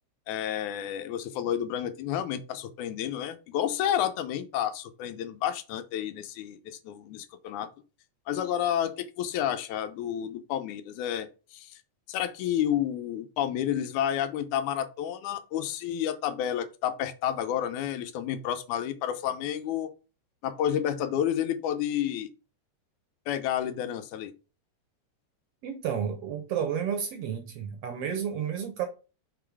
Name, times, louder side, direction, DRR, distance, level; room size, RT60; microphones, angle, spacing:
voice 1, 0.3-7.7 8.3-11.8 12.1-19.9 20.4-22.3 23.3-24.3, left 10 dB, 90° left, 2.1 m, -30 dB
voice 2, 25.6-28.9, right 8 dB, 70° right, 1.6 m, -31 dB
5.3 x 3.8 x 4.7 m
omnidirectional pair, 3.4 m